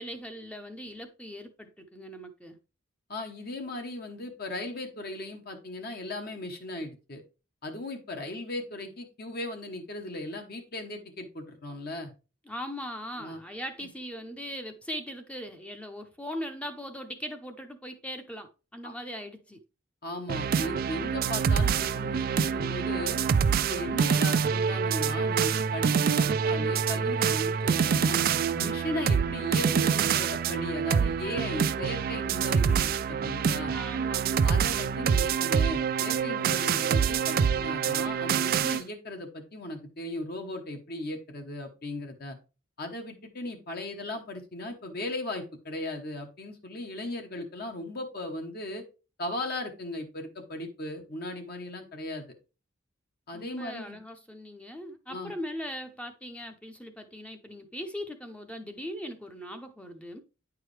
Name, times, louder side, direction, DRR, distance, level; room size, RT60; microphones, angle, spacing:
voice 1, 0.0-2.6 12.5-19.6 33.7-34.4 53.3-60.2, equal, 5° left, 0.6 m, -40 dB
voice 2, 3.1-7.2 7.6-12.1 13.2-13.4 18.8-18.9 20.0-23.2 23.5-28.2 28.5-33.7 34.4-42.4 42.8-48.8 49.2-52.2 53.3-54.0 55.1-55.3, left 1 dB, 50° left, 1.0 m, -37 dB
sound 1, 20.3-38.8, right 6 dB, 50° right, 0.3 m, -26 dB
9.5 x 4.7 x 3.2 m
head